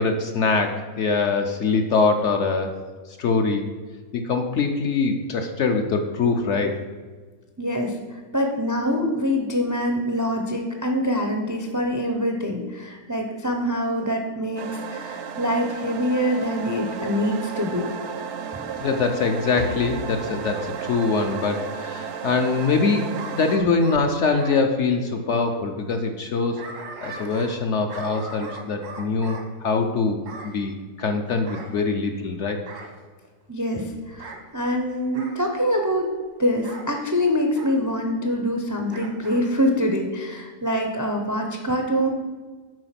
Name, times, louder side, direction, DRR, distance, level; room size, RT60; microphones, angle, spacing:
voice 1, 0.0-2.7 3.2-3.6 4.1-6.7 18.8-26.6 27.0-32.6, left 4 dB, 60° left, 4 dB, 0.8 m, -23 dB
voice 2, 7.6-8.0 8.3-17.9 33.5-36.1 36.4-42.1, equal, 25° right, 3 dB, 0.4 m, -25 dB
sound 1, 14.6-23.6, right 7 dB, 60° right, 0.8 m, -34 dB
Bark / Growling, 20.4-22.1 23.1-24.6 26.2-27.6 27.9-29.5 30.2-30.6 31.5-32.3 32.7-33.0 34.1-34.4 35.1-35.4 36.6-36.9 37.5-37.8 38.9-39.4 39.8-39.9, right 3 dB, 85° right, 1.8 m, -40 dB
7.7 x 5.0 x 5.8 m, 1.4 s
omnidirectional pair, 1.7 m